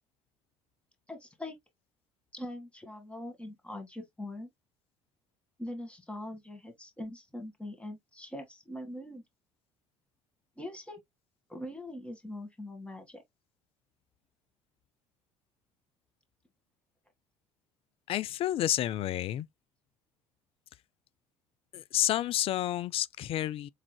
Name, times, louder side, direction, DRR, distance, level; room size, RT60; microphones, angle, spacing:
voice 1, 1.1-1.6 2.3-4.5 5.6-9.2 10.6-11.0 11.5-13.2, left 1 dB, 10° left, 1.8 m, -42 dB
voice 2, 18.1-19.5 21.7-23.7, left 13 dB, 50° left, 0.4 m, -30 dB
4.8 x 3.6 x 2.2 m
hypercardioid pair, 70°, 12 cm